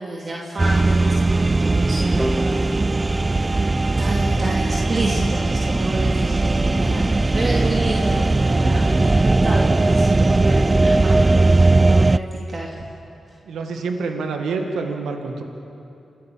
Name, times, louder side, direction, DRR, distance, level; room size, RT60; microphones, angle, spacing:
voice 1, 0.0-2.8 4.0-7.1 7.3-12.9, right 2 dB, 50° right, -3 dB, 2.6 m, -29 dB
sound 1, 0.6-12.2, right 2 dB, 30° right, 0.4 m, -18 dB
sound 2, 2.2-5.0, right 1 dB, 10° right, 1.1 m, -31 dB
sound 3, 2.3-9.2, left 3 dB, 40° left, 1.0 m, -38 dB
voice 2, 13.4-15.4, right 4 dB, 85° right, 4 dB, 1.8 m, -27 dB
27.0 x 13.5 x 7.4 m, 2.7 s
supercardioid pair, 45°, 0 cm